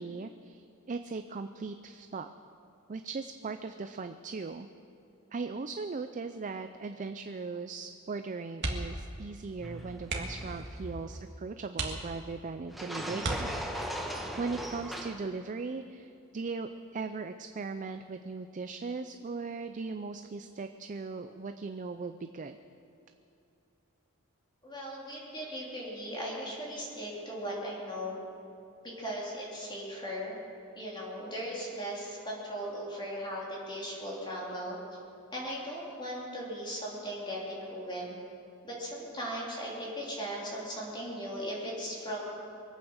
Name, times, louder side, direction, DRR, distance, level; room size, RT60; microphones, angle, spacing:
voice 1, 0.0-2.3 2.9-4.7 5.3-14.0 14.4-22.6, right 4 dB, 35° right, 8 dB, 0.4 m, -38 dB
sound 1, 8.6-9.1 9.4-9.6 10.0-10.5 11.1-11.2 11.7-12.5 13.2-14.0 15.5-15.8 16.2-16.3, right 2 dB, 55° right, 2.0 m, -35 dB
sound 2, 9.6-11.4 12.7-15.1, equal, ahead, 1.1 m, -39 dB
voice 2, 24.6-28.2 28.8-30.4 30.8-34.8 35.3-38.2 38.6-42.3, equal, 20° left, -5 dB, 3.2 m, -38 dB
23.5 x 8.9 x 6.5 m, 2.6 s
head